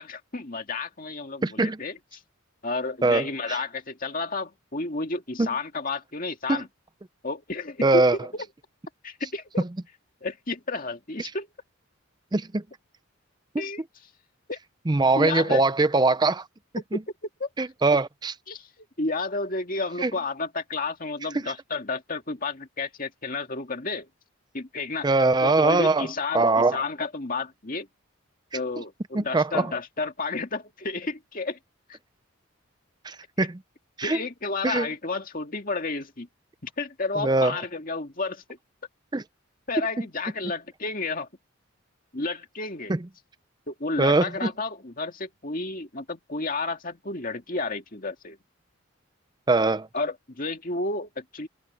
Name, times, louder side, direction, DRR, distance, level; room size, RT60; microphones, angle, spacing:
voice 1, 0.0-2.0 2.6-6.7 7.2-8.0 8.3-8.5 9.0-9.6 10.2-11.5 13.6-13.8 14.5-14.6 15.2-15.6 16.9-17.0 17.4-17.5 18.5-24.1 24.5-25.1 25.4-27.9 28.5-31.6 31.9-32.0 34.0-36.3 36.6-38.4 39.7-41.3 42.1-42.9 43.7-48.4 49.9-51.5, left 3 dB, 40° left, 2.2 m, -31 dB
voice 2, 1.4-1.8 3.0-3.6 5.4-5.5 6.5-6.6 7.8-8.2 12.3-12.6 14.9-16.4 16.9-17.0 17.6-18.3 20.0-20.1 21.4-21.5 25.0-26.1 26.3-26.8 29.1-29.7 33.0-33.6 34.0-34.2 34.6-34.9 37.2-37.5 39.1-39.2 42.9-43.0 44.0-44.5 49.5-49.9, right 3 dB, 20° right, 0.5 m, -22 dB
head